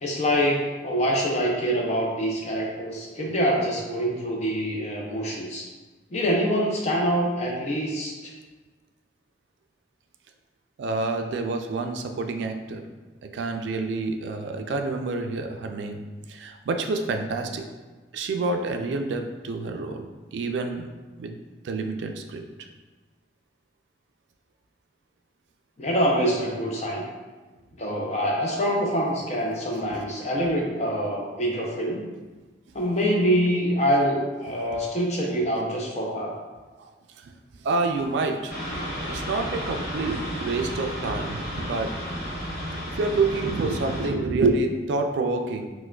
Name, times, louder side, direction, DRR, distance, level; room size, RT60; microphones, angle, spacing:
voice 1, 0.0-5.7 6.1-8.3 25.8-27.0 27.8-32.1 32.7-36.3, equal, 35° left, -1 dB, 0.5 m, -25 dB
voice 2, 10.8-12.8 13.3-16.0 16.3-17.6 18.1-20.0 20.3-20.8 21.2-21.3 21.6-22.4 36.8-36.9 37.2-37.3 37.6-38.6 39.1-41.9 42.9-45.7, right 3 dB, 75° right, 5 dB, 0.3 m, -27 dB
sound 1, 38.5-44.1, equal, 55° left, 0.9 m, -33 dB
4.5 x 2.1 x 2.3 m, 1.3 s
head